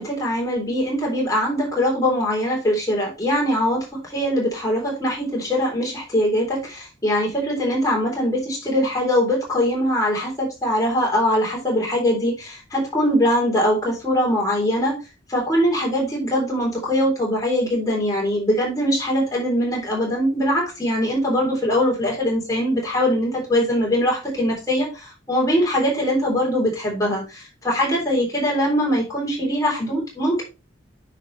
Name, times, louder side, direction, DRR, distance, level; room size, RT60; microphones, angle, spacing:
voice 1, 0.0-15.0 15.3-30.4, equal, 20° left, -3 dB, 3.7 m, -22 dB
9.8 x 5.4 x 3.2 m, 0.29 s
head